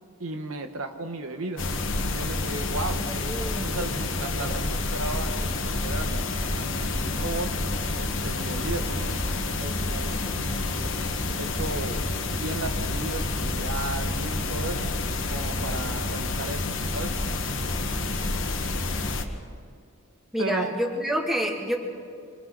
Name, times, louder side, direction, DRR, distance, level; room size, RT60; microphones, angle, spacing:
voice 1, 0.2-1.7 2.1-3.3 3.6-7.5 7.9-10.9 11.4-12.0 12.3-14.9 15.3-16.7 16.9-17.2 20.4-20.7, right 2 dB, 70° right, 7 dB, 1.1 m, -35 dB
sound 1, 1.6-19.2, left 2 dB, 60° left, 1.5 m, -28 dB
voice 2, 3.1-3.8 20.3-21.8, equal, ahead, -1 dB, 2.4 m, -28 dB
27.0 x 26.0 x 4.0 m, 2.4 s
head